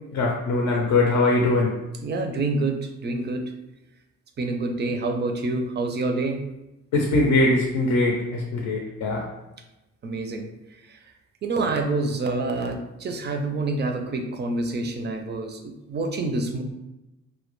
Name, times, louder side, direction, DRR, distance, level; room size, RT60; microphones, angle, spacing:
voice 1, 0.1-1.8 6.9-9.3, left 2 dB, 70° left, 0 dB, 0.5 m, -21 dB
voice 2, 2.0-3.4 4.4-6.4 10.0-10.5 10.9-11.0 11.4-15.6 15.9-16.6, right 3 dB, 35° right, 4 dB, 0.4 m, -27 dB
2.1 x 2.1 x 3.0 m, 0.98 s
cardioid pair, 90°, 30 cm